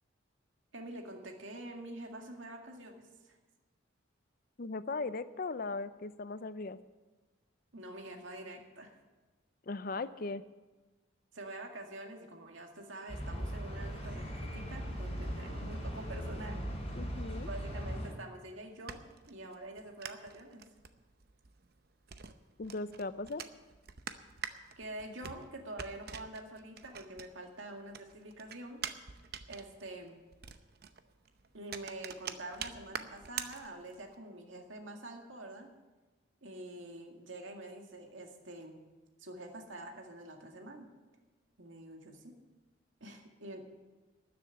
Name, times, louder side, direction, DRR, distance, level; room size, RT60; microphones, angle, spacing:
voice 1, 0.7-3.4 7.7-8.9 11.3-16.6 17.5-19.0 19.3-20.6 24.8-28.8 29.5-30.2 31.5-35.7 36.4-38.8 39.2-40.9 41.6-42.4 43.0-43.6, right 1 dB, 75° right, 3 dB, 2.0 m, -46 dB
voice 2, 4.6-6.8 9.7-10.4 16.9-17.5 22.6-23.4, left 3 dB, 45° left, 14 dB, 0.5 m, -38 dB
sound 1, 13.1-18.1, equal, 30° left, 5.9 m, -39 dB
sound 2, 18.4-27.6 27.9-34.2, right 7 dB, 50° right, 0.8 m, -45 dB
13.0 x 7.5 x 10.0 m, 1.2 s
head